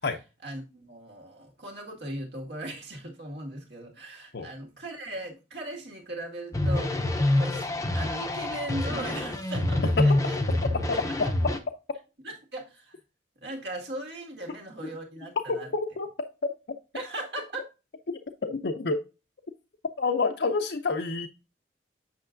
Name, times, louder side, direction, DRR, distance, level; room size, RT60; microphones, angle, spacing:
voice 1, 0.4-7.7 7.9-10.4 10.9-11.0 12.2-13.0 13.4-15.7 16.9-17.6, right 1 dB, 65° right, 1.9 m, -38 dB
sound 1, 6.5-11.6, left 1 dB, 15° left, 0.6 m, -26 dB
voice 2, 15.5-16.1 16.4-16.5 18.4-19.0 20.0-21.3, left 3 dB, 60° left, 0.6 m, -28 dB
8.0 x 6.5 x 2.5 m
head